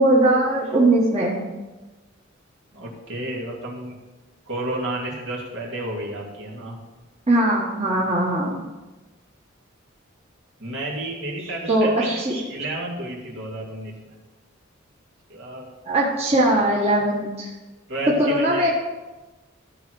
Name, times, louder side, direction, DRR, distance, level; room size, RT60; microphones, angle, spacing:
voice 1, 0.0-1.4 7.3-8.6 11.7-12.4 15.9-17.5 18.2-18.7, right 1 dB, 30° right, -5 dB, 1.7 m, -20 dB
voice 2, 2.7-4.0 4.5-6.8 10.6-12.1 12.5-14.2 15.3-15.7 17.9-18.7, right 1 dB, 65° right, -3 dB, 2.8 m, -31 dB
14.0 x 4.9 x 6.4 m, 1.1 s
head